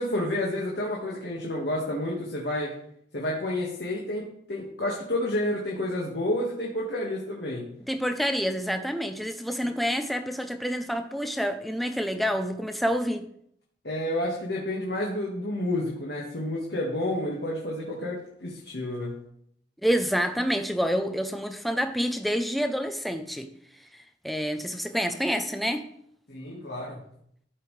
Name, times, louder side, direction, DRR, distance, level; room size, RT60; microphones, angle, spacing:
voice 1, 0.0-2.7 3.1-7.7 13.8-19.2 26.3-27.0, left 1 dB, 65° left, -4 dB, 1.7 m, -30 dB
voice 2, 7.9-13.2 19.8-23.5 23.9-25.9, equal, ahead, 7 dB, 0.6 m, -28 dB
13.5 x 5.5 x 3.3 m, 0.70 s
head